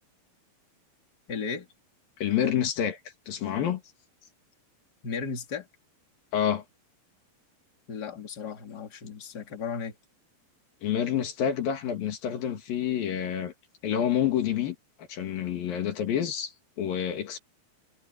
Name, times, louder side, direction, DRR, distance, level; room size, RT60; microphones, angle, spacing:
voice 1, 1.3-1.7 5.0-5.7 7.9-9.9, left 6 dB, 30° left, 3.1 m, -35 dB
voice 2, 2.2-3.0 3.3-3.8 6.3-6.6 10.8-13.5 13.8-14.8 15.1-17.4, left 9 dB, 75° left, 3.7 m, -28 dB
omnidirectional pair, 4.1 m